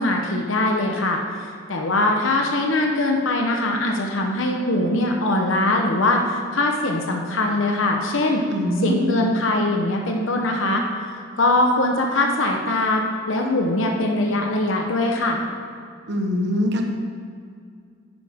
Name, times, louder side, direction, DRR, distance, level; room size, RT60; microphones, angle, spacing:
voice 1, 0.0-8.4 8.8-10.8 11.1-13.0 13.3-15.4, left 2 dB, 75° left, 1 dB, 1.0 m, -22 dB
voice 2, 8.5-9.2 16.1-16.9, left 1 dB, 60° right, 3 dB, 1.2 m, -23 dB
10.5 x 9.8 x 3.6 m, 2.2 s
head